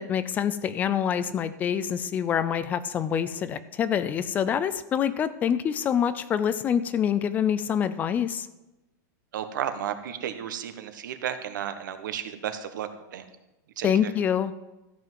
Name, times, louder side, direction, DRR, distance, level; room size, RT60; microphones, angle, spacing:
voice 1, 0.0-8.5 13.8-14.5, left 8 dB, 15° left, 14 dB, 0.4 m, -26 dB
voice 2, 9.3-13.2 13.8-14.1, right 9 dB, 85° right, 9 dB, 1.3 m, -33 dB
13.5 x 5.9 x 7.5 m, 1.0 s
supercardioid pair, 170°, 10 cm